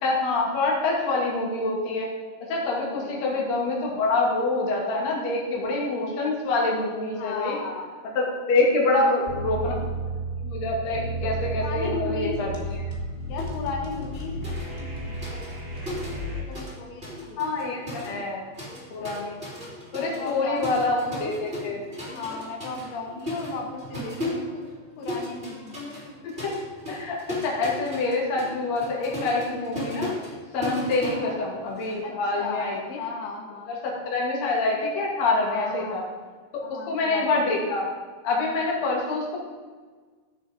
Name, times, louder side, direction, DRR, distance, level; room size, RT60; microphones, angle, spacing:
voice 1, 0.0-2.1 2.5-7.6 8.0-9.7 10.0-12.5 17.4-18.4 18.9-19.3 19.9-21.8 26.2-26.5 26.9-30.1 30.5-33.0 33.7-36.0 36.9-37.9 38.2-39.4, left 3 dB, 45° left, -3 dB, 3.2 m, -26 dB
voice 2, 3.0-3.5 7.1-8.3 11.6-12.4 13.2-15.5 16.4-17.4 17.7-17.9 20.0-20.8 22.1-24.7 25.0-25.9 31.0-31.4 32.0-33.7 35.4-36.0 36.6-37.5, left 4 dB, 80° left, 1 dB, 3.5 m, -36 dB
sound 1, 9.3-16.4, right 2 dB, 90° right, 0.5 m, -32 dB
sound 2, 13.4-13.6 13.9-16.8 17.0-32.0, left 1 dB, 15° right, 2.7 m, -36 dB
14.5 x 7.3 x 5.2 m, 1.5 s
omnidirectional pair, 5.1 m